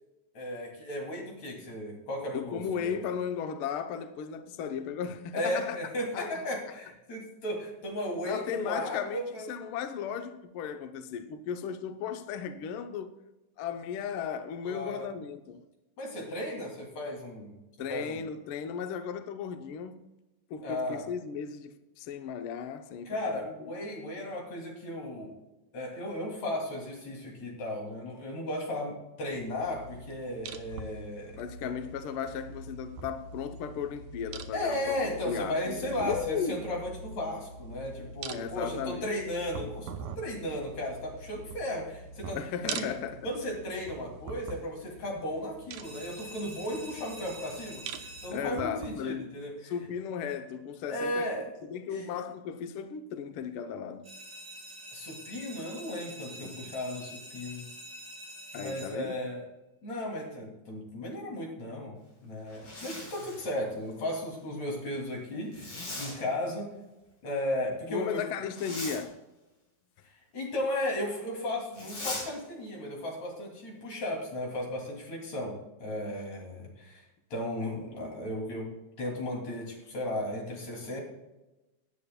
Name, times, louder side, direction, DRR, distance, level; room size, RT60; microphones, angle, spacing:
voice 1, 0.3-3.1 5.3-9.6 14.6-15.1 16.0-17.6 17.9-18.2 20.6-21.0 23.1-25.4 25.7-31.7 34.5-42.4 42.7-42.9 43.2-47.8 48.2-49.7 50.9-51.5 51.9-52.1 54.9-57.7 58.5-59.4 59.8-66.7 67.2-68.2 70.0-77.1 77.3-78.7 79.0-81.0, left 1 dB, 60° left, 3.8 m, -35 dB
voice 2, 2.3-5.8 6.1-6.4 8.2-13.1 13.6-15.6 17.8-20.0 20.5-23.5 31.4-36.7 38.3-39.1 42.3-43.2 48.3-49.3 49.6-51.3 51.6-54.1 56.4-56.6 58.5-59.1 67.9-69.2, left 7 dB, 90° left, 1.2 m, -36 dB
sound 1, 29.3-48.9, right 4 dB, 80° right, 2.3 m, -44 dB
sound 2, 45.8-48.7 54.0-59.2, right 1 dB, 30° right, 3.8 m, -46 dB
Zipper (clothing), 62.5-63.5 65.5-66.2 68.5-69.0 71.7-72.3, left 1 dB, 45° left, 4.5 m, -39 dB
18.0 x 9.6 x 2.2 m
omnidirectional pair, 3.5 m